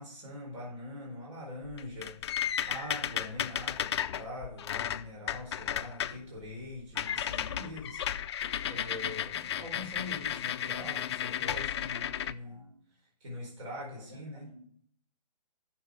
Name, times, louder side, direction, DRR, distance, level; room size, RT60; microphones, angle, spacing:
voice 1, 0.0-12.6 13.2-14.5, left 1 dB, 50° right, -2 dB, 4.5 m, -43 dB
sound 1, 1.6-6.2 6.5-6.7 7.0-12.3, left 10 dB, 40° left, 0.4 m, -34 dB
voice 2, 12.2-12.9 14.0-14.6, right 1 dB, 80° right, 0 dB, 5.5 m, -56 dB
11.5 x 6.8 x 4.9 m, 0.62 s
hypercardioid pair, 145°, 21 cm